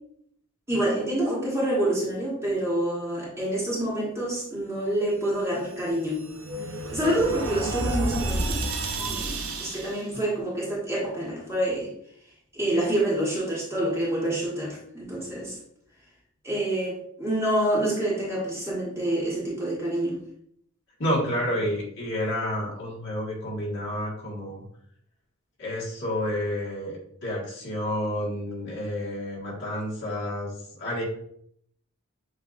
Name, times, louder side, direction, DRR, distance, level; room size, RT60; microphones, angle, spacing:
voice 1, 0.7-6.2 6.9-8.7 9.0-11.9 12.5-15.6 16.4-20.2, right 1 dB, 15° right, -5 dB, 1.2 m, -27 dB
sound 1, 5.5-10.1, right 2 dB, 85° right, 0.7 m, -31 dB
voice 2, 21.0-24.6 25.6-31.0, left 1 dB, 55° left, -5 dB, 1.6 m, -30 dB
7.1 x 2.6 x 2.5 m, 0.69 s
head